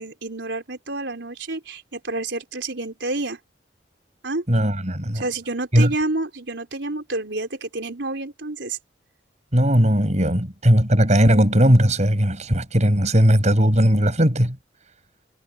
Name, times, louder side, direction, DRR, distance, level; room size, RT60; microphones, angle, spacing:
voice 1, 0.0-3.4 4.2-4.4 5.1-8.8, right 2 dB, 75° right, 4.2 m, -29 dB
voice 2, 4.5-5.2 5.7-5.9 9.5-14.6, equal, 40° right, 8.0 m, -18 dB
head